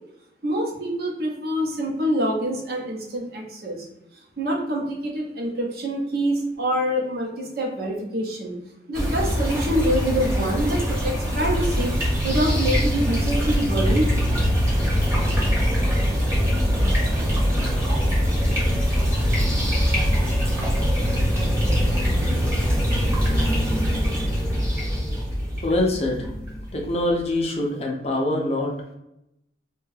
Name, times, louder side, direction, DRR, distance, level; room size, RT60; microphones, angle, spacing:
voice 1, 0.4-3.9 4.4-8.5 8.9-11.9 12.2-14.1 21.4-21.5 23.9-24.3, equal, 55° right, -1 dB, 0.7 m, -26 dB
sound 1, 8.9-27.1, equal, 15° right, 0.8 m, -22 dB
voice 2, 25.6-26.3 26.7-29.0, left 1 dB, 35° left, 0 dB, 0.5 m, -24 dB
2.6 x 2.3 x 3.1 m, 0.84 s
head